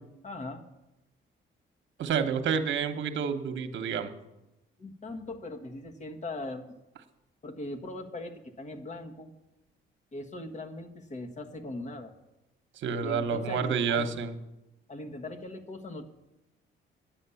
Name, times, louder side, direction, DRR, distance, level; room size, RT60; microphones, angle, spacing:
voice 1, 0.2-0.6 4.8-6.8 7.4-9.3 10.1-12.1 13.0-14.1 14.9-16.0, left 2 dB, 35° left, 6 dB, 1.4 m, -40 dB
voice 2, 2.0-4.1 12.8-14.3, right 6 dB, 70° right, 8 dB, 1.1 m, -29 dB
10.5 x 8.7 x 7.0 m, 0.95 s
cardioid pair, 90°, 20 cm